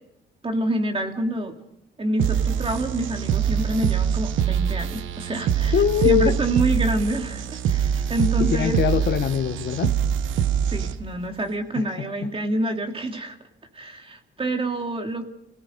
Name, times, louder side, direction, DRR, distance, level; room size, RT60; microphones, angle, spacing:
voice 1, 0.4-1.6 2.0-5.7 6.0-8.8 10.7-13.4 13.7-15.3, right 1 dB, 30° right, 2.8 m, -27 dB
sound 1, 2.2-11.2, right 8 dB, 75° right, 1.1 m, -24 dB
voice 2, 5.6-6.4 8.4-10.0 11.7-11.8, left 10 dB, 60° left, 1.3 m, -22 dB
29.0 x 17.5 x 5.3 m
cardioid pair, 90°, 20 cm